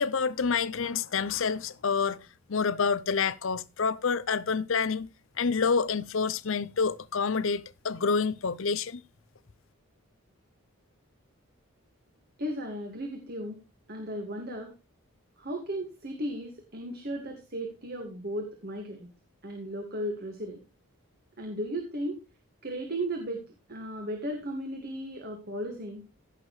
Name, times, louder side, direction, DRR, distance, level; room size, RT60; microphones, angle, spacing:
voice 1, 0.0-5.1 5.4-9.0, left 5 dB, 65° left, 0.6 m, -28 dB
voice 2, 12.4-13.6 13.9-14.7 15.4-19.1 19.4-20.6 21.4-22.2 22.6-23.4 23.7-26.0, right 1 dB, 45° right, 2.0 m, -35 dB
16.0 x 6.7 x 3.2 m
head